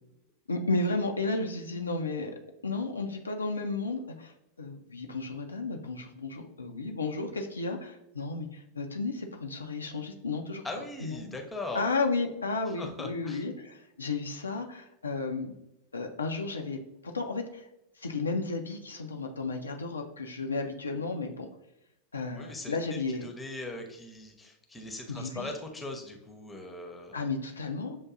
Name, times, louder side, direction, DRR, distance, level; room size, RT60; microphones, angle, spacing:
voice 1, 0.5-2.3 2.6-4.3 4.6-10.6 11.0-11.4 11.7-15.5 15.9-16.8 17.0-17.6 18.0-21.5 22.1-23.3 25.1-25.5 27.1-28.0, left 3 dB, 75° left, 3 dB, 0.4 m, -33 dB
voice 2, 10.6-11.8 12.7-13.4 22.4-22.8 23.2-27.2, left 2 dB, 10° left, 3 dB, 0.7 m, -40 dB
7.0 x 2.6 x 2.4 m, 0.88 s
figure-of-eight pair, 90°, 0 cm